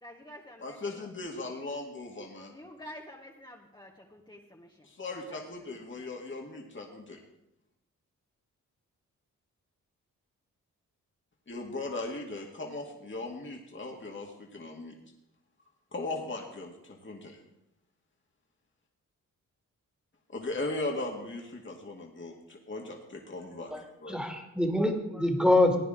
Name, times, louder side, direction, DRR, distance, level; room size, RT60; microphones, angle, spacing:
voice 1, 0.0-1.1 2.5-4.9 5.3-5.4, left 1 dB, 15° left, -1 dB, 1.5 m, -49 dB
voice 2, 0.6-2.5 4.8-7.2 11.5-14.9 15.9-17.4 20.3-23.7 24.0-24.1, left 2 dB, 35° left, 0 dB, 2.1 m, -38 dB
voice 3, 23.7-25.8, left 1 dB, 5° right, 3 dB, 2.3 m, -25 dB
16.0 x 9.4 x 3.8 m, 0.87 s
supercardioid pair, 45°, 35 cm